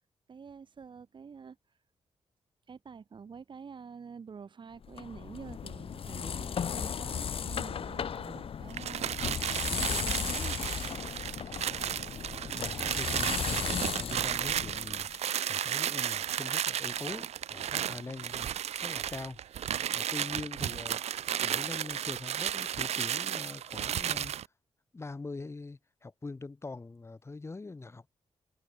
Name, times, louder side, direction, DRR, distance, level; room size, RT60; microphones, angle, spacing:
voice 1, 0.3-1.6 2.7-10.8, right 6 dB, 50° right, 5.9 m, -47 dB
sound 1, 4.8-15.2, left 7 dB, 60° left, 2.8 m, -36 dB
sound 2, 8.7-24.5, right 10 dB, 85° right, 2.0 m, -33 dB
voice 2, 12.5-18.5 18.8-19.4 19.9-21.0 21.4-24.3 24.9-28.1, left 3 dB, 25° left, 2.9 m, -43 dB
wide cardioid pair, 115°, 11 cm